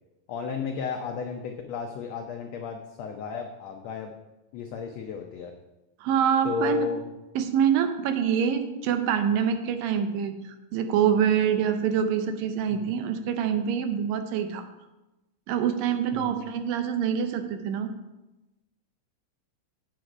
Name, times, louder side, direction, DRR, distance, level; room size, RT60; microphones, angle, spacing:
voice 1, 0.3-4.1 4.5-5.5 6.4-7.1 12.7-12.9 16.1-16.4, left 6 dB, 85° left, 3 dB, 1.5 m, -33 dB
voice 2, 6.0-6.9 7.4-14.6 15.5-17.9, right 8 dB, 90° right, 8 dB, 2.6 m, -25 dB
8.2 x 7.8 x 4.9 m, 1.0 s
omnidirectional pair, 3.9 m